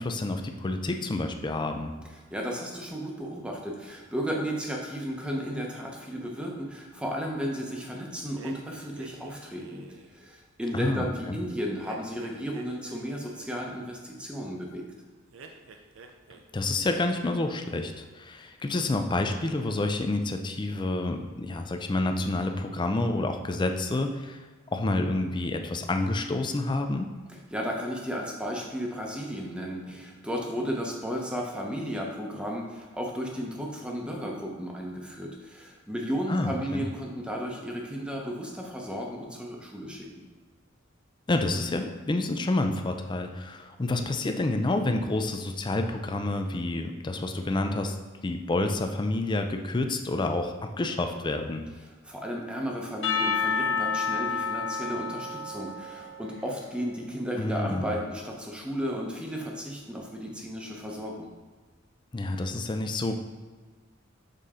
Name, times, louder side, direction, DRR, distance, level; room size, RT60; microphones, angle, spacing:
voice 1, 0.0-1.9 10.7-11.4 16.5-24.4 24.7-27.1 36.3-36.8 41.3-48.0 48.2-51.6 57.4-58.0 62.1-63.2, left 2 dB, 25° left, 6 dB, 0.4 m, -29 dB
voice 2, 2.3-9.8 10.1-14.9 27.3-40.1 52.0-61.3, equal, 5° right, -1 dB, 0.8 m, -34 dB
sound 1, 8.3-10.2 11.8-13.7 15.3-16.4 16.7-17.2, right 4 dB, 75° right, 0.6 m, -49 dB
Percussion / Church bell, 53.0-56.7, left 5 dB, 65° left, 1.2 m, -30 dB
6.6 x 4.1 x 3.7 m, 1.4 s
head